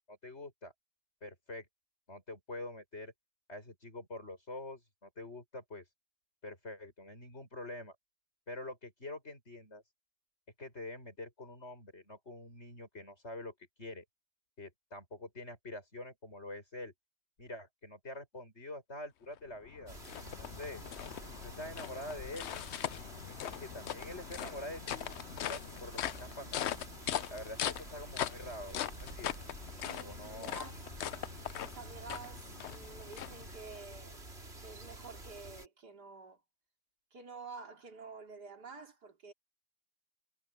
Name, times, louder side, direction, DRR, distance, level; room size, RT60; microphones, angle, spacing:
voice 1, 0.1-0.7 1.2-1.7 2.1-3.1 3.5-5.9 6.4-8.0 8.5-9.8 10.6-14.0 14.6-16.9 17.4-20.0 20.4-20.8 21.3-22.5 22.9-26.7 27.3-29.4 29.9-30.6, left 2 dB, 40° left, 7.3 m, -46 dB
sound 1, 19.4-33.8, left 10 dB, 60° left, 0.7 m, -41 dB
sound 2, 19.9-35.7, right 2 dB, 40° right, 3.7 m, -50 dB
voice 2, 29.8-30.8 31.5-34.2 34.6-36.4 37.1-39.3, right 4 dB, 85° right, 3.4 m, -49 dB
omnidirectional pair, 1.7 m